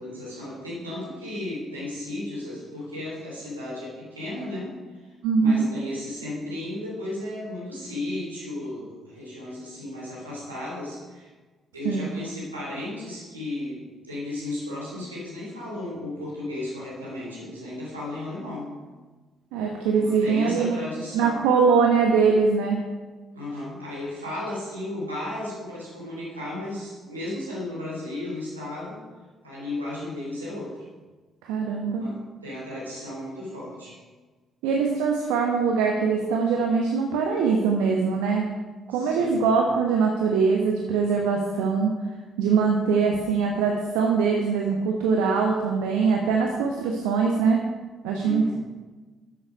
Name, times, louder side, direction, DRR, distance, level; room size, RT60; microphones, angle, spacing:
voice 1, 0.0-4.7 5.4-11.3 11.7-18.7 19.9-21.4 23.3-29.0 29.4-30.8 31.7-32.2 32.4-34.0 38.9-39.5 48.2-48.5, left 1 dB, 90° right, -7 dB, 3.7 m, -34 dB
voice 2, 5.2-5.7 11.8-12.1 19.5-20.8 21.1-22.8 31.4-32.1 34.6-38.5 38.9-41.9 42.4-47.6 48.0-48.5, right 5 dB, 70° right, 1 dB, 1.1 m, -22 dB
12.0 x 7.7 x 5.3 m, 1.3 s
figure-of-eight pair, 45°, 0 cm